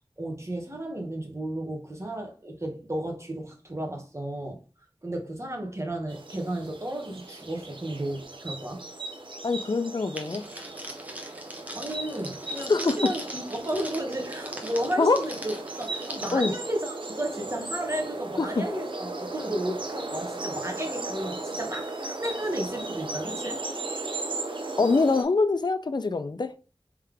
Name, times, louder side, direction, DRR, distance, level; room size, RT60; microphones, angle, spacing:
voice 1, 0.2-4.6 5.0-8.8 11.7-23.6, right 1 dB, 30° right, 1.3 m, -33 dB
sound 1, 6.1-25.2, right 2 dB, 65° right, 0.8 m, -36 dB
voice 2, 9.4-10.5 12.7-13.0 15.0-15.2 16.3-16.5 18.4-18.6 24.8-26.5, left 3 dB, 50° left, 0.4 m, -24 dB
Crackle, 10.2-16.3, equal, 15° right, 1.1 m, -41 dB
3.6 x 3.3 x 3.4 m
wide cardioid pair, 55°, 9 cm